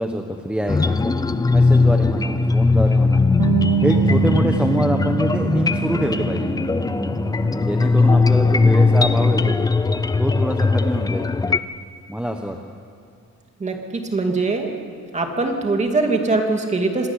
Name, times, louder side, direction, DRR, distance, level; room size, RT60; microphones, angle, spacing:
voice 1, 0.0-3.2 3.8-6.5 7.6-9.6 10.2-11.3 12.1-12.6, equal, 5° right, 3 dB, 1.0 m, -25 dB
sound 1, 0.7-11.6, left 3 dB, 15° left, 0.4 m, -19 dB
Bass guitar, 3.4-9.6, right 12 dB, 75° right, 2.0 m, -27 dB
voice 2, 13.6-14.7 15.1-17.1, right 3 dB, 25° right, 3 dB, 2.4 m, -22 dB
26.0 x 13.0 x 9.9 m, 2.4 s
wide cardioid pair, 175°, 30 cm